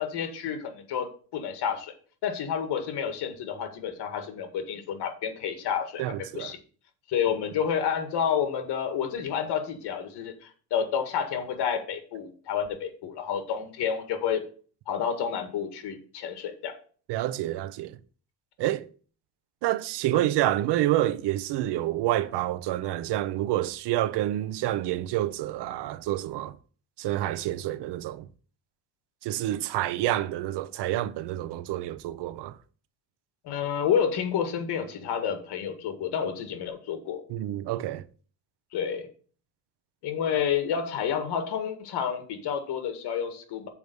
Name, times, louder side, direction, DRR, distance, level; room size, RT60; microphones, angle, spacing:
voice 1, 0.0-1.9 2.2-6.0 6.3-6.6 7.1-14.4 14.9-16.7 20.1-20.3 33.4-37.2 38.7-39.1 40.0-43.7, left 8 dB, 80° left, 1.8 m, -29 dB
voice 2, 6.0-6.5 17.1-18.0 18.6-18.9 19.6-26.5 27.0-28.2 29.2-32.5 37.3-38.0, right 14 dB, 90° right, 0.8 m, -28 dB
7.0 x 4.7 x 6.8 m
cardioid pair, 135°, 40 cm